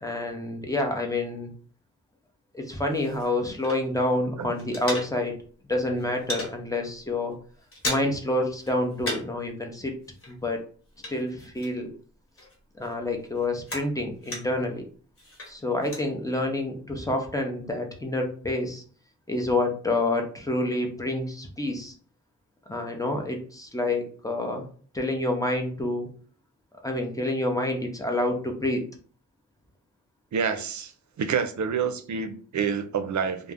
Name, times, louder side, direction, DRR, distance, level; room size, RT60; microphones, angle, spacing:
voice 1, 0.0-1.5 2.5-5.3 5.7-7.3 7.8-9.9 10.3-10.6 11.1-11.9 12.8-14.8 15.5-18.8 19.3-21.9 22.7-24.6 24.9-26.1 26.8-28.8, left 2 dB, 10° left, 2 dB, 0.7 m, -28 dB
sound 1, 2.7-4.1 4.4-5.5 5.8-6.6 7.0-7.1 7.4-8.3 8.6-9.4 9.7-12.0 12.4-14.7 15.2-16.1, left 1 dB, 45° left, 1.0 m, -37 dB
voice 2, 30.3-30.9 31.2-33.5, right 6 dB, 65° right, 7 dB, 0.5 m, -28 dB
2.4 x 2.0 x 3.4 m, 0.43 s
cardioid pair, 60°, 31 cm